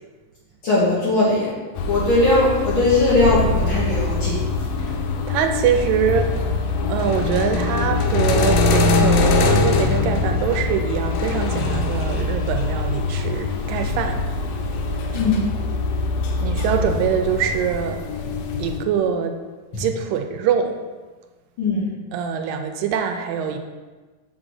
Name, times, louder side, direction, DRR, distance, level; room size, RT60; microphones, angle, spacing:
voice 1, 0.6-1.5 1.8-4.4 15.1-15.4 19.7-19.8 21.6-21.9, left 2 dB, 45° left, -7 dB, 2.1 m, -19 dB
sound 1, 1.8-18.8, left 3 dB, 90° left, 2.6 m, -22 dB
voice 2, 5.3-6.3 6.9-14.2 16.4-18.0 18.6-19.3 19.8-20.8 22.1-23.6, right 7 dB, 85° right, 6 dB, 2.3 m, -23 dB
6.2 x 4.4 x 6.3 m, 1.3 s
omnidirectional pair, 4.0 m